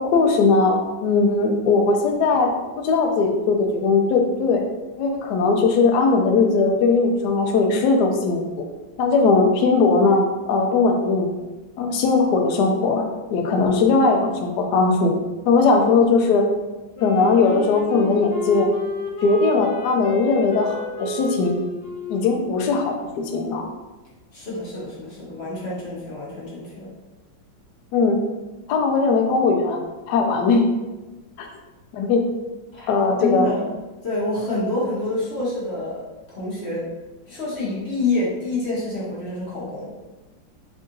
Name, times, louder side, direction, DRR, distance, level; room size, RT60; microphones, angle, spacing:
voice 1, 0.0-4.6 5.0-8.4 9.0-11.3 11.8-13.0 13.3-15.1 15.5-16.5 17.0-18.7 19.2-21.5 22.1-23.6 27.9-28.2 28.7-29.8 30.1-30.6 31.4-31.5 31.9-32.2 32.9-33.6, left 4 dB, 70° left, 3 dB, 1.1 m, -19 dB
Wind instrument woodwind instrument, 16.9-23.7, left 3 dB, 90° left, 1.5 m, -32 dB
voice 2, 24.3-26.9 32.7-32.9 33.2-33.8 34.0-36.9 37.3-39.9, left 2 dB, 40° left, -7 dB, 1.2 m, -27 dB
3.7 x 2.6 x 3.7 m, 1.1 s
omnidirectional pair, 2.1 m